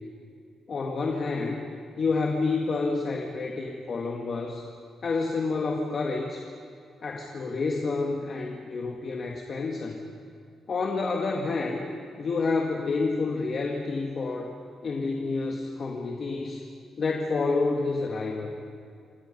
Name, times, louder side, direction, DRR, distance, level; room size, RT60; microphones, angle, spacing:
voice 1, 0.7-4.6 5.0-6.5 7.0-10.0 10.7-11.8 12.2-14.5 14.8-16.6 17.0-18.5, left 3 dB, 35° left, 1 dB, 2.0 m, -29 dB
27.5 x 27.5 x 5.5 m, 2.6 s
cardioid pair, 160°, 0 cm